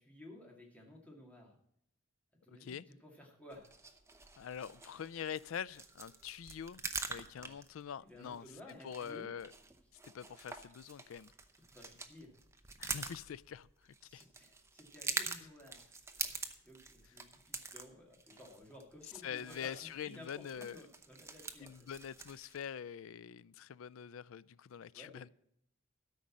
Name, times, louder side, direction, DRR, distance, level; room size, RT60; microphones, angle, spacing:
voice 1, 0.0-1.6 2.4-3.8 7.4-7.6 8.0-9.3 11.6-12.4 14.0-16.3 16.6-21.9 24.9-25.3, left 1 dB, 5° left, 2.3 m, -55 dB
voice 2, 2.5-2.8 4.4-8.5 8.8-9.5 10.0-11.3 12.8-14.2 19.2-20.8 21.6-25.3, left 8 dB, 75° left, 0.4 m, -45 dB
sound 1, 3.5-22.7, right 4 dB, 15° right, 0.7 m, -46 dB
13.0 x 5.3 x 7.3 m
head